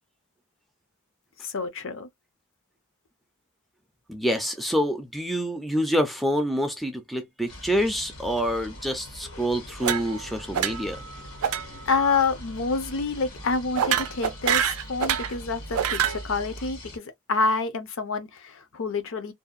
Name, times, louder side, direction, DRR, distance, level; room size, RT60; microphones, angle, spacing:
voice 1, 1.4-2.1 11.9-19.3, left 4 dB, 60° left, 0.6 m, -28 dB
voice 2, 4.1-11.0, equal, ahead, 0.4 m, -27 dB
sound 1, 7.5-17.0, equal, 85° left, 1.5 m, -42 dB
sound 2, 9.8-10.3 10.5-11.0 11.4-11.6 11.9-12.2 13.8-15.3 15.7-16.2, right 9 dB, 80° right, 0.4 m, -26 dB
2.6 x 2.1 x 2.3 m
head